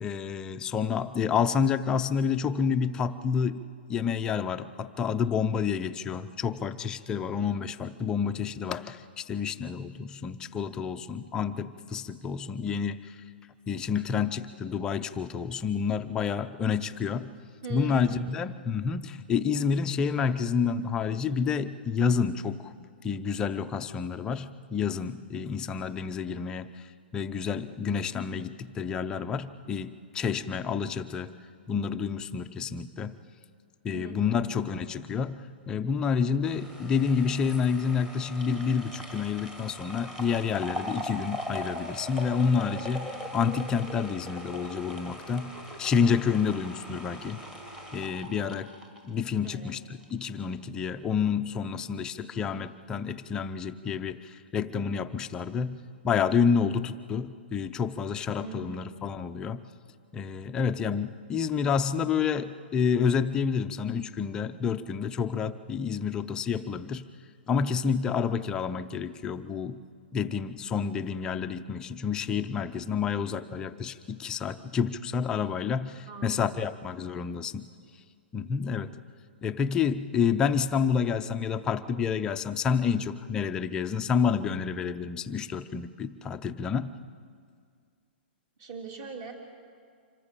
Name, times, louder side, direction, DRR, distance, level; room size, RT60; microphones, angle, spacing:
voice 1, 0.0-3.6 3.9-13.0 13.7-17.3 17.7-22.7 23.0-26.8 27.1-31.3 31.7-33.1 33.8-45.5 45.8-47.4 47.9-48.7 49.0-59.6 60.1-67.0 67.5-69.8 70.1-77.6 78.3-78.9 79.4-86.9, left 6 dB, 10° left, 8 dB, 0.5 m, -29 dB
voice 2, 17.6-18.3 33.9-34.5 49.4-49.7 58.4-58.9 76.1-77.0 88.6-89.3, right 3 dB, 35° right, 3 dB, 3.2 m, -41 dB
sound 1, 36.4-49.7 50.0-50.1, equal, 10° right, 1.9 m, -40 dB
25.5 x 14.0 x 8.4 m, 2.1 s
hypercardioid pair, 165°, 6 cm